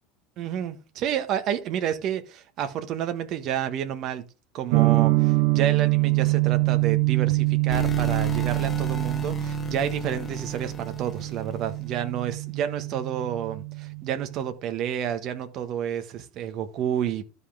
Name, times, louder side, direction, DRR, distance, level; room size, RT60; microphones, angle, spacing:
voice 1, 0.4-4.2 4.5-17.2, right 9 dB, 35° right, 1.5 m, -30 dB
sound 1, 4.7-14.5, right 24 dB, 65° right, 1.5 m, -25 dB
sound 2, 7.7-11.9, left 3 dB, 10° left, 1.2 m, -35 dB
12.5 x 5.5 x 3.8 m
cardioid pair, 170°, 0 cm